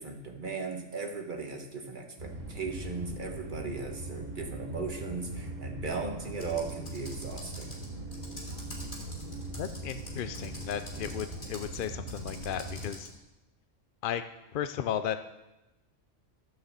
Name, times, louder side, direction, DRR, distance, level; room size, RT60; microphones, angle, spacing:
voice 1, 0.0-7.7, right 4 dB, 40° right, 3 dB, 1.5 m, -37 dB
sound 1, 2.2-12.9, right 2 dB, 85° right, 2.3 m, -40 dB
Computer keyboard, 6.4-13.1, left 1 dB, 40° left, 2.4 m, -47 dB
voice 2, 9.6-13.1 14.0-14.2 14.5-15.2, left 9 dB, 65° left, 10 dB, 0.5 m, -34 dB
12.5 x 6.6 x 7.2 m, 1.0 s
omnidirectional pair, 1.3 m